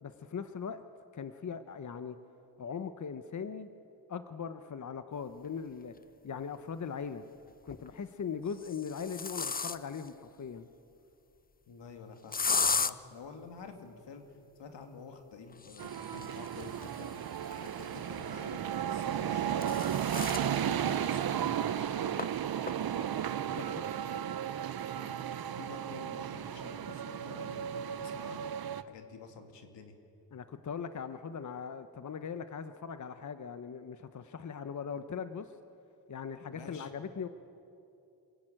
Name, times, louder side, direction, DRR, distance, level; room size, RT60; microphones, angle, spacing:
voice 1, 0.0-0.8 1.1-2.2 2.6-3.7 4.1-5.9 6.2-7.2 7.6-10.7 23.6-23.8 30.3-35.6 36.1-37.3, left 6 dB, 45° left, 10 dB, 1.0 m, -40 dB
sound 1, 5.9-6.0 7.5-7.9 8.5-10.1 12.3-12.9 15.5-18.1 19.2-20.5 21.0-21.1 21.4-21.5 22.2-22.3 22.7-23.1, left 5 dB, 20° left, 0.6 m, -35 dB
voice 2, 11.7-14.3 14.6-17.1 17.6-19.5 20.2-22.4 23.5-24.3 25.0-29.9 36.5-36.9, left 5 dB, 85° left, 5 dB, 2.4 m, -50 dB
sound 2, 15.8-28.8, right 9 dB, 60° right, 0.8 m, -34 dB
26.5 x 16.5 x 9.0 m, 2.7 s
cardioid pair, 75°, 42 cm